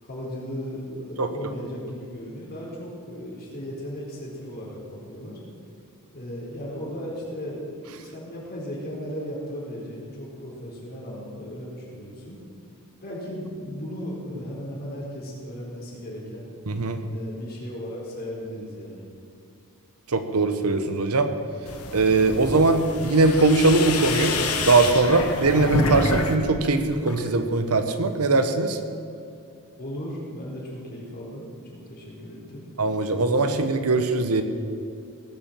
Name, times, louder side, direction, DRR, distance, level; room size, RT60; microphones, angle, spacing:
voice 1, 0.0-5.4 6.1-12.4 13.0-16.5 17.1-19.1 29.8-32.7, equal, 45° left, -4 dB, 4.1 m, -36 dB
voice 2, 16.7-17.0 20.1-21.3 21.9-24.4 24.6-28.8 32.8-34.4, right 3 dB, 80° right, 8 dB, 1.1 m, -21 dB
sound 1, 21.7-26.3 26.6-27.3, left 3 dB, 85° left, 1.4 m, -28 dB
18.0 x 7.3 x 7.6 m, 2.5 s
head